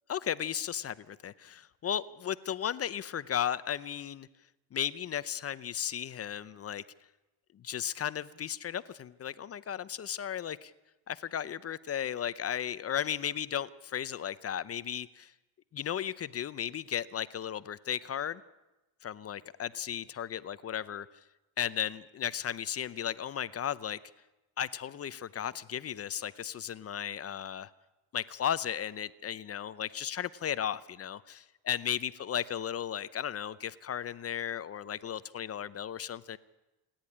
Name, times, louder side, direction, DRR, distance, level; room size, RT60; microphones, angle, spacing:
voice 1, 0.1-4.3 4.7-6.8 7.5-10.7 11.1-15.3 15.7-18.4 19.0-21.1 21.6-24.0 24.6-27.7 28.1-36.4, left 9 dB, 30° left, 16 dB, 0.6 m, -35 dB
28.0 x 10.5 x 9.9 m, 1.0 s
cardioid pair, 125°, 46 cm